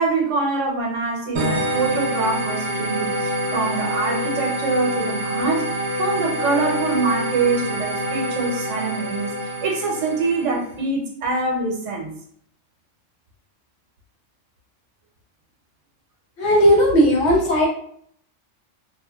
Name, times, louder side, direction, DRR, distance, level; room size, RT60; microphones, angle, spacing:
voice 1, 0.0-5.7 5.9-9.3 9.6-12.1, right 3 dB, 75° right, -1 dB, 1.0 m, -24 dB
sound 1, 1.3-10.7, equal, 55° right, 0.4 m, -26 dB
voice 2, 16.4-17.7, equal, 65° left, -3 dB, 1.0 m, -16 dB
2.8 x 2.1 x 2.3 m, 0.63 s
omnidirectional pair, 1.3 m